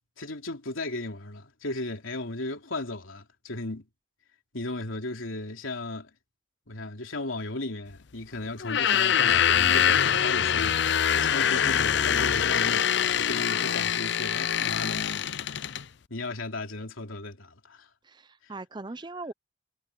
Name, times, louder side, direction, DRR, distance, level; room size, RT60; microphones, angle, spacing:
voice 1, 0.2-3.9 4.5-6.1 6.7-12.9 13.2-15.8 16.1-17.9 18.4-18.5, left 2 dB, 85° left, 3.3 m, -36 dB
sound 1, 8.6-15.8, left 8 dB, 60° left, 0.5 m, -24 dB
voice 2, 18.1-19.3, right 2 dB, 20° right, 0.6 m, -40 dB
head